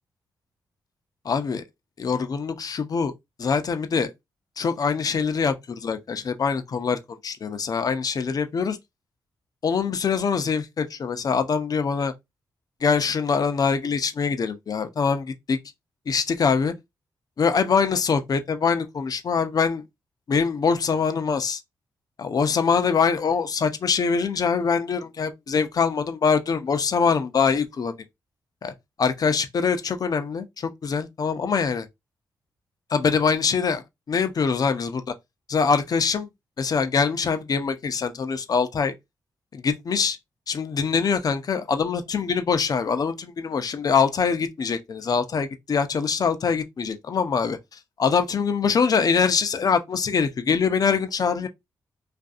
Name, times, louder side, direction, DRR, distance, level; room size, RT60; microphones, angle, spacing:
voice 1, 1.2-1.6 2.0-3.1 3.4-4.1 4.6-8.8 9.6-12.1 12.8-15.6 16.1-16.7 17.4-19.8 20.3-21.6 22.2-27.9 28.6-28.7 29.0-31.9 32.9-35.0 35.5-36.3 36.6-38.9 39.5-40.2 40.5-47.6 48.0-51.5, left 5 dB, 50° left, 0.5 m, -23 dB
2.5 x 2.5 x 2.4 m
cardioid pair, 55°, 8 cm